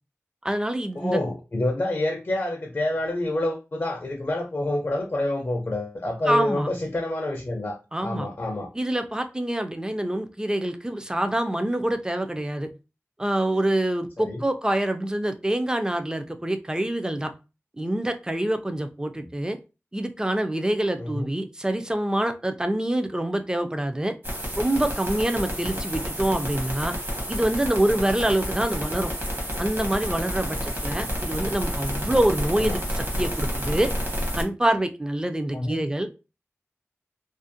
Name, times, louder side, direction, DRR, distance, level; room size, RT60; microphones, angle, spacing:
voice 1, 0.4-1.2 6.3-6.7 7.9-8.3 8.7-12.7 13.2-17.3 17.8-19.6 19.9-24.1 24.6-26.9 27.3-29.1 29.6-33.9 34.3-36.1, right 1 dB, 15° right, 8 dB, 0.3 m, -26 dB
voice 2, 0.9-8.7 14.2-14.4 21.0-21.3 25.7-25.8 31.0-31.1 32.6-32.8 35.5-35.8, left 1 dB, 45° left, 1 dB, 0.4 m, -28 dB
sound 1, 24.2-34.4, equal, 45° right, 0.9 m, -30 dB
2.5 x 2.1 x 2.6 m, 0.31 s
wide cardioid pair, 70°, 5 cm